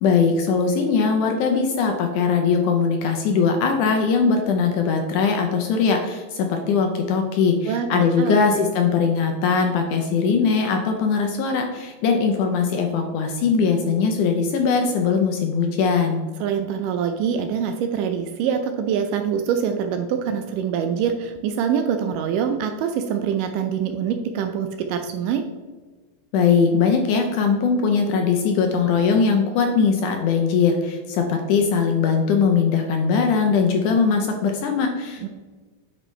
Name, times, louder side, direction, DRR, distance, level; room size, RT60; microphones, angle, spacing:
voice 1, 0.0-16.2 26.3-35.3, left 5 dB, 75° left, 3 dB, 1.9 m, -20 dB
voice 2, 7.7-8.6 16.4-25.4 35.2-35.3, right 7 dB, 80° right, 6 dB, 2.0 m, -24 dB
8.7 x 5.3 x 3.1 m, 1.4 s
omnidirectional pair, 4.1 m